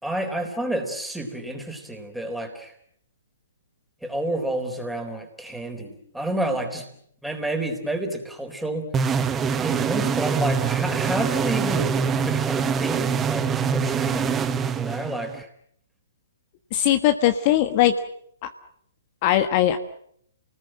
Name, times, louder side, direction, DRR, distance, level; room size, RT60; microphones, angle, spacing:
voice 1, 0.0-2.7 4.0-6.9 7.2-8.9 9.6-12.0 12.3-14.4 14.8-15.5, right 1 dB, ahead, 3 dB, 4.1 m, -29 dB
sound 1, 8.9-15.4, right 6 dB, 15° right, 1.2 m, -24 dB
voice 2, 16.7-17.9 18.4-18.5 19.2-19.8, left 12 dB, 40° left, 8 dB, 1.4 m, -20 dB
29.5 x 19.5 x 7.7 m, 0.68 s
figure-of-eight pair, 125°, 0 cm